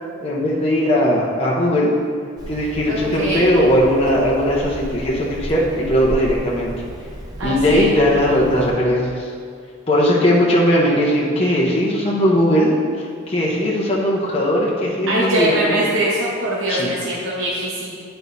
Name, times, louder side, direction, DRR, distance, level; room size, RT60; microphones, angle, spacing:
voice 1, 0.2-1.9 2.5-6.7 7.4-9.3 9.9-12.8 13.3-15.8 16.7-16.9, equal, 30° left, -5 dB, 0.9 m, -18 dB
Hammer, 2.4-8.7, equal, 20° right, 0.7 m, -33 dB
voice 2, 2.9-3.5 7.4-7.9 15.1-18.0, right 1 dB, 75° right, -6 dB, 1.1 m, -22 dB
11.0 x 4.4 x 2.8 m, 2.2 s
head